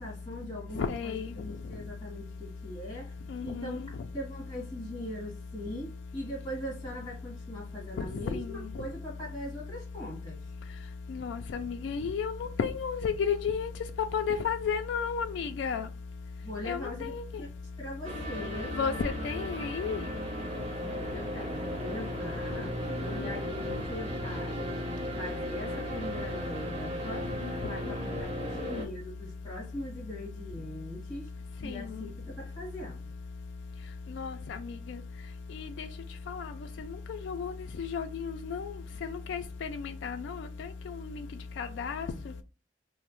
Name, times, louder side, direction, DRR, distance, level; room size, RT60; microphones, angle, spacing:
voice 1, 0.0-3.1 3.4-3.8 4.1-10.4 16.4-17.1 17.4-17.5 17.8-18.7 20.7-22.7 23.1-23.4 23.9-24.6 25.2-27.3 27.6-31.3 31.6-33.1, equal, 20° left, -3 dB, 1.6 m, -41 dB
voice 2, 0.8-1.3 3.3-3.9 8.0-8.1 8.3-8.6 11.1-13.7 14.1-15.9 16.6-17.2 18.7-20.0 22.9-23.4 23.7-23.8 27.4-27.6 31.6-32.0 34.1-35.0 35.5-35.9 36.3-36.5 36.8-38.7 39.0-41.3 41.6-42.1, left 6 dB, 70° left, 6 dB, 0.3 m, -33 dB
sound 1, 18.0-28.9, equal, 40° right, 0.7 m, -36 dB
3.0 x 2.0 x 3.0 m, 0.31 s
head